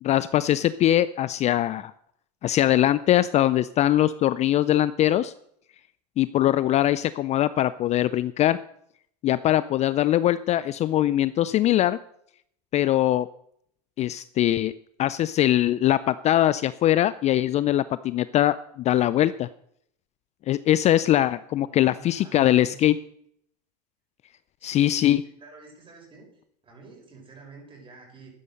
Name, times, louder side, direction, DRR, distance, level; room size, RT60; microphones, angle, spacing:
voice 1, 0.0-1.9 2.4-5.3 6.2-8.6 9.2-12.0 12.7-13.3 14.0-14.7 15.0-19.5 20.5-23.0 24.6-25.2, left 13 dB, 30° left, 16 dB, 0.5 m, -22 dB
voice 2, 21.6-22.8 24.6-25.0 25.4-26.3 26.6-28.3, right 3 dB, 25° right, 1 dB, 6.4 m, -47 dB
12.5 x 9.9 x 6.5 m, 0.70 s
hypercardioid pair, 105°, 21 cm